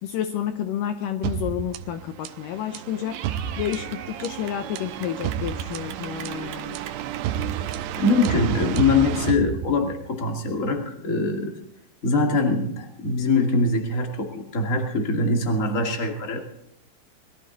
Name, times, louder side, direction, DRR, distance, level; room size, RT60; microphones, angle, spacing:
voice 1, 0.0-3.2 3.6-6.8, left 10 dB, 85° left, 9 dB, 1.9 m, -30 dB
sound 1, 1.2-10.2, right 10 dB, 85° right, 3.0 m, -31 dB
Clapping / Cheering, 3.1-8.3, right 9 dB, 65° right, 2.1 m, -41 dB
voice 2, 8.0-11.6 12.0-16.5, left 3 dB, 25° left, 3 dB, 1.9 m, -23 dB
22.0 x 13.5 x 4.0 m, 0.74 s
omnidirectional pair, 4.9 m